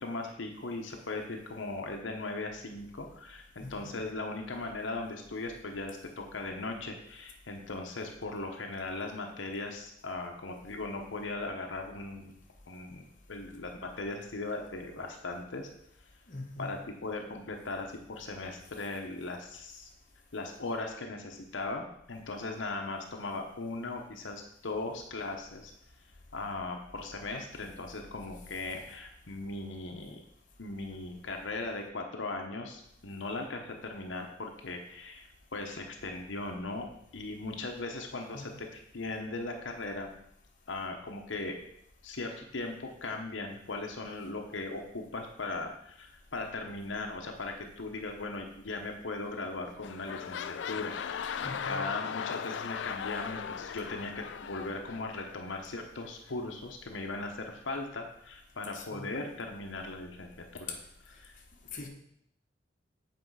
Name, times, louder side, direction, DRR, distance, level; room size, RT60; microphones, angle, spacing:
voice 1, 0.0-12.3 12.7-15.7 16.6-19.9 20.3-25.7 26.3-30.2 30.6-40.1 40.7-41.6 42.0-60.8 61.2-61.3, left 2 dB, 85° left, 2 dB, 1.0 m, -38 dB
voice 2, 3.6-3.9 16.3-16.7 38.3-38.6 51.2-51.8 58.7-59.1 60.7-60.8 61.7-61.9, left 3 dB, 45° left, 0 dB, 1.1 m, -42 dB
sound 1, 49.2-49.5 49.8-55.6 56.3-56.4, left 7 dB, 65° left, 0.3 m, -38 dB
7.9 x 4.7 x 4.7 m, 0.71 s
head